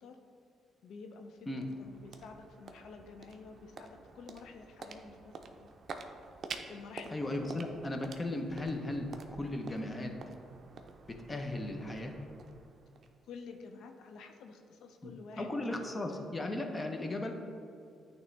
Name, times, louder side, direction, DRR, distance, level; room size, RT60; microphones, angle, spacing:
voice 1, 0.8-5.7 6.7-7.7 13.2-15.5 15.9-16.3, left 4 dB, 80° left, 5 dB, 0.4 m, -50 dB
sound 1, 1.1-13.5, right 4 dB, 50° right, 0.5 m, -49 dB
voice 2, 7.1-10.1 11.1-12.2 15.0-17.3, left 1 dB, 25° left, 3 dB, 0.7 m, -36 dB
9.2 x 3.1 x 3.3 m, 2.4 s
cardioid pair, 90°, 0 cm